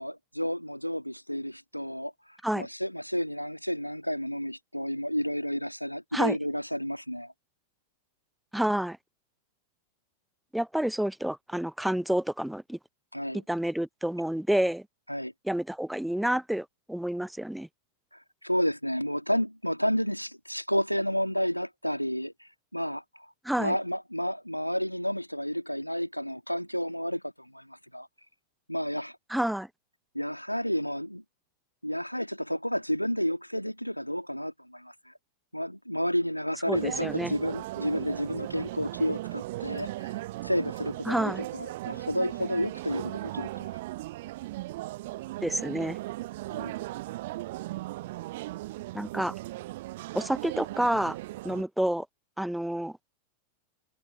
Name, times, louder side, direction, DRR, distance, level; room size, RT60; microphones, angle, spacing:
voice 1, 0.0-2.1 2.6-7.3 13.1-13.4 15.1-15.3 18.4-23.3 23.6-28.1 28.7-29.2 30.1-31.2 31.8-35.1 35.5-40.1 40.4-43.7 46.5-46.7, equal, 90° left, 2.2 m, -31 dB
voice 2, 8.5-9.0 10.5-12.8 13.3-14.9 15.4-17.7 23.4-23.7 29.3-29.7 36.7-37.3 41.1-41.4 45.4-46.0 48.9-49.3 50.1-51.2 51.4-52.1 52.4-53.0, right 1 dB, ahead, 0.9 m, -29 dB
sound 1, 36.7-51.6, right 18 dB, 55° right, 0.4 m, -37 dB
figure-of-eight pair, 90°, 0 cm